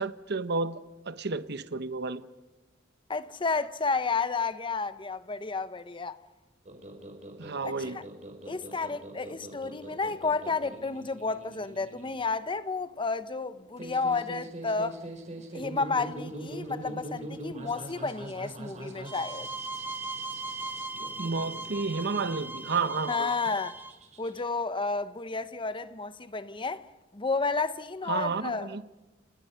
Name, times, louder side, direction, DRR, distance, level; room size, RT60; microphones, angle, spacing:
voice 1, 0.0-2.2 7.4-8.0 21.2-23.3 28.1-28.8, right 4 dB, 60° right, 1.1 m, -31 dB
voice 2, 3.1-6.2 7.6-8.0 8.4-15.0 15.5-19.5 23.1-23.8 24.2-26.8 27.1-28.7, left 4 dB, 25° left, 0.9 m, -31 dB
sound 1, 6.7-24.4, right 1 dB, 40° right, 4.6 m, -43 dB
sound 2, 19.0-24.0, right 3 dB, 10° right, 2.1 m, -38 dB
29.5 x 29.0 x 5.8 m
head